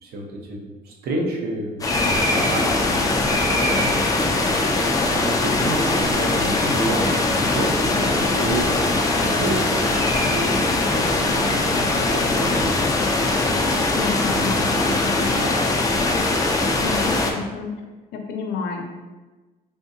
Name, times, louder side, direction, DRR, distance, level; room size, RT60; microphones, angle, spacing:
voice 1, 0.0-3.4 3.7-4.0 4.4-4.5 5.1-9.6 10.0-13.1 14.2-14.8 15.1-15.7, right 1 dB, 70° right, 0 dB, 0.8 m, -30 dB
sound 1, 1.8-17.3, left 2 dB, 20° left, 0.4 m, -21 dB
sound 2, 1.8-13.8, equal, 20° right, 0.7 m, -34 dB
voice 2, 13.9-14.6 16.8-17.8 18.1-18.9, left 5 dB, 80° left, 3 dB, 0.5 m, -29 dB
3.6 x 2.7 x 2.7 m, 1.2 s
cardioid pair, 110°, 17 cm